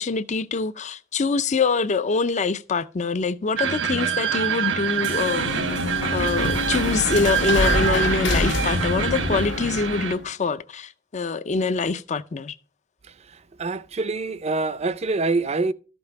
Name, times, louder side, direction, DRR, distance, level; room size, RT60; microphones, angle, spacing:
voice 1, 0.0-5.5 6.1-12.6, left 4 dB, 40° left, 0.5 m, -24 dB
sound 1, 3.6-10.2, right 6 dB, 75° right, 1.2 m, -25 dB
sound 2, 4.7-10.2, left 2 dB, 65° left, 1.1 m, -27 dB
voice 2, 13.1-15.7, right 3 dB, 35° right, 0.5 m, -26 dB
13.5 x 5.3 x 5.7 m
head